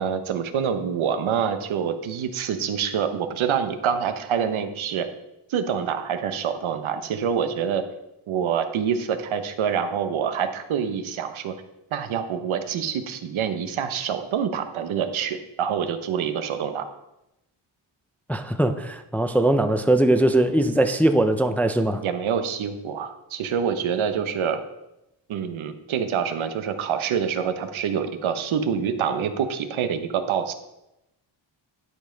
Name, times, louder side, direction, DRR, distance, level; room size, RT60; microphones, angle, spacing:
voice 1, 0.0-5.1 5.5-7.8 8.3-11.5 11.9-16.9 22.0-24.6 25.3-30.5, right 7 dB, 85° right, 9 dB, 0.9 m, -26 dB
voice 2, 18.3-22.0, right 1 dB, 5° left, 8 dB, 0.3 m, -20 dB
11.0 x 5.2 x 3.8 m, 0.91 s
wide cardioid pair, 120°, 47 cm